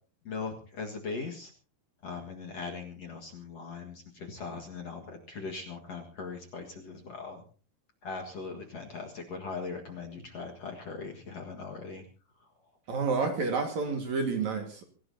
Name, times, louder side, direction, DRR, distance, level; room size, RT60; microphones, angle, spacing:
voice 1, 0.3-1.5 2.0-7.4 8.0-12.0, left 4 dB, 50° left, 2 dB, 2.3 m, -40 dB
voice 2, 12.9-14.8, right 4 dB, 55° right, 4 dB, 2.8 m, -29 dB
25.0 x 16.0 x 2.8 m, 0.38 s
omnidirectional pair, 4.7 m